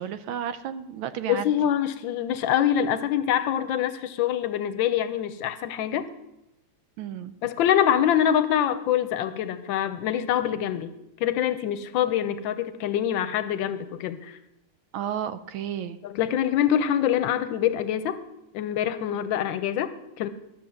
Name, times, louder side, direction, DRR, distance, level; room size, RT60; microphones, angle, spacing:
voice 1, 0.0-1.5 7.0-7.3 14.9-16.0, right 9 dB, 80° right, 12 dB, 1.4 m, -32 dB
voice 2, 1.3-6.1 7.4-14.4 16.0-18.2 18.5-20.3, left 10 dB, 75° left, 12 dB, 1.3 m, -25 dB
11.5 x 6.4 x 6.9 m, 0.90 s
omnidirectional pair, 2.2 m